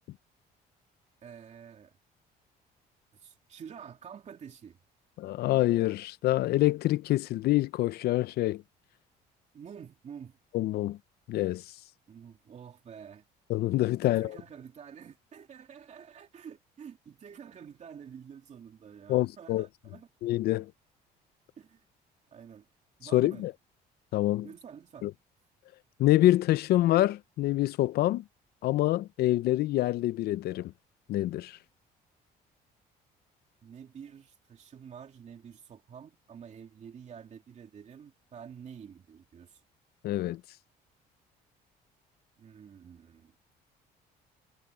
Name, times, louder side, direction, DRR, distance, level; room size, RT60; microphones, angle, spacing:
voice 1, 1.2-2.0 3.1-4.8 9.5-10.4 12.1-13.2 14.0-20.1 21.6-21.8 22.3-22.7 23.0-23.5 24.4-25.1 33.6-39.6 42.4-43.4, right 7 dB, 45° right, 2.8 m, -48 dB
voice 2, 5.2-8.6 10.5-11.0 11.3-11.6 13.5-14.4 19.1-19.7 20.2-20.7 23.1-23.5 24.1-24.5 25.0-25.1 26.0-28.2 28.6-30.7 31.1-31.6 40.0-40.4, left 15 dB, 70° left, 0.5 m, -26 dB
cardioid pair, 110°, 17 cm